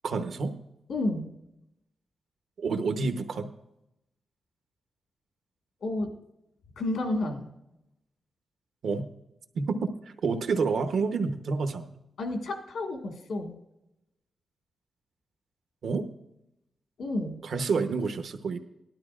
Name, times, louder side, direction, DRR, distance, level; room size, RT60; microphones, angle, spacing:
voice 1, 0.0-0.6 2.6-3.5 8.8-9.1 9.5-9.9 10.2-11.9 15.8-16.1 17.4-18.6, right 4 dB, 65° right, 7 dB, 0.8 m, -28 dB
voice 2, 0.9-1.3 5.8-6.1 6.8-7.5 12.2-13.5 17.0-17.4, left 2 dB, 85° left, 3 dB, 1.6 m, -31 dB
18.5 x 12.0 x 2.4 m, 0.88 s
wide cardioid pair, 165°, 0 cm